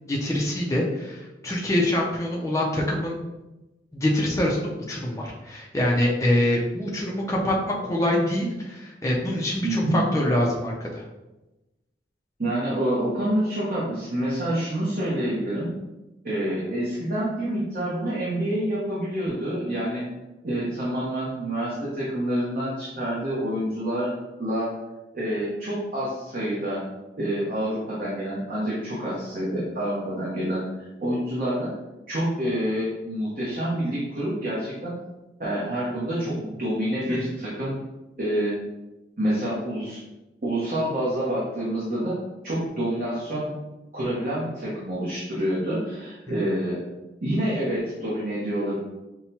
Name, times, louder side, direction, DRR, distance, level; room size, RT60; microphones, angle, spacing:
voice 1, 0.1-3.2 3.9-11.0 37.1-37.2, left 1 dB, 20° left, -3 dB, 0.5 m, -25 dB
voice 2, 9.6-10.0 12.4-15.7 16.2-20.0 20.4-24.1 24.4-24.7 25.1-26.8 27.2-30.6 31.0-31.7 32.1-34.9 35.4-37.8 38.2-38.5 39.2-40.0 40.4-42.1 42.4-43.5 43.9-46.8 47.2-48.8, right 1 dB, 50° right, -8 dB, 0.9 m, -27 dB
5.7 x 2.2 x 2.8 m, 1.0 s
head